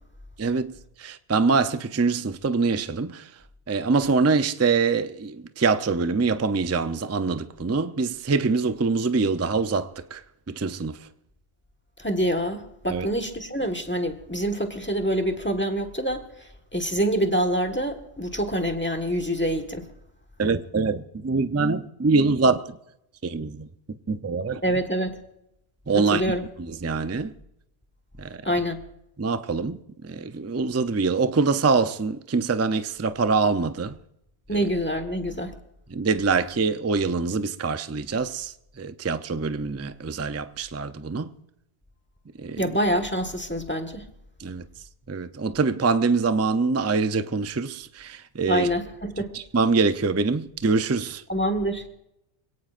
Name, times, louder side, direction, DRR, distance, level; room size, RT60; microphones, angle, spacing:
voice 1, 0.4-0.7 1.0-3.3 3.7-11.0 12.9-13.1 20.4-22.8 23.2-23.7 24.1-24.6 25.9-26.2 26.6-27.3 28.2-28.4 29.2-34.0 34.5-34.6 35.9-41.3 42.4-42.6 44.4-44.7 45.1-48.7 49.3-51.2, right 4 dB, 20° right, 0.4 m, -24 dB
voice 2, 12.0-19.9 24.6-25.2 26.0-26.5 28.4-28.8 34.5-35.5 42.6-44.1 48.5-49.3 51.3-51.9, equal, 10° left, 1.4 m, -26 dB
26.5 x 17.5 x 2.5 m
omnidirectional pair, 1.2 m